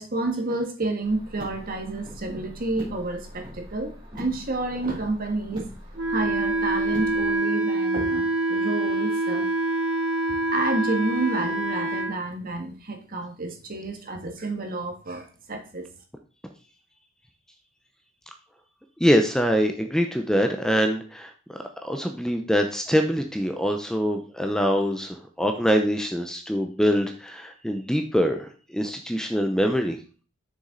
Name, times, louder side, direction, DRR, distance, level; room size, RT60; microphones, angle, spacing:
voice 1, 0.0-5.7 6.1-9.5 10.3-15.8, right 2 dB, 45° right, 4 dB, 1.6 m, -30 dB
Car, 1.0-7.4, equal, 25° right, 3.3 m, -42 dB
Wind instrument woodwind instrument, 6.0-12.1, right 2 dB, 75° right, 1.1 m, -25 dB
voice 2, 19.0-21.3 21.8-30.0, equal, 5° left, 4 dB, 0.6 m, -24 dB
6.9 x 6.3 x 3.9 m, 0.38 s
head